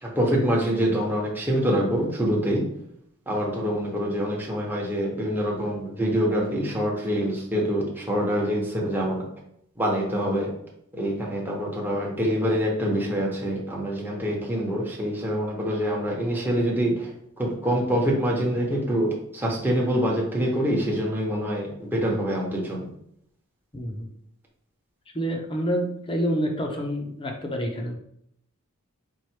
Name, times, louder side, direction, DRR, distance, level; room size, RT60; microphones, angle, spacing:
voice 1, 0.0-2.6 3.3-9.2 9.8-10.5 10.9-22.9, equal, 10° right, -3 dB, 1.1 m, -25 dB
voice 2, 23.7-24.1 25.1-27.9, equal, 25° left, 2 dB, 0.8 m, -28 dB
4.6 x 2.5 x 4.6 m, 0.72 s
head